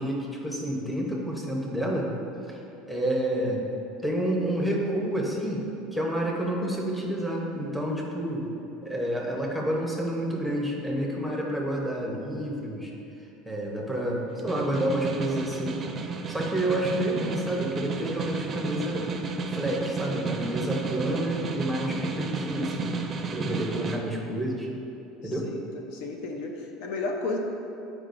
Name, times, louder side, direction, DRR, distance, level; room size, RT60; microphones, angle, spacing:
voice 1, 0.0-2.1 2.5-2.6 2.9-3.7 4.0-5.6 5.9-8.5 8.8-12.9 13.4-15.8 16.3-19.1 19.5-22.9 23.3-24.7 25.2-25.5, right 1 dB, 5° left, -2 dB, 0.9 m, -29 dB
Snare drum, 14.3-24.0, right 4 dB, 25° right, 0.5 m, -32 dB
voice 2, 25.0-25.6 25.9-27.4, left 3 dB, 65° left, 2 dB, 0.7 m, -34 dB
9.9 x 4.8 x 2.6 m, 2.8 s
supercardioid pair, 140°, 0 cm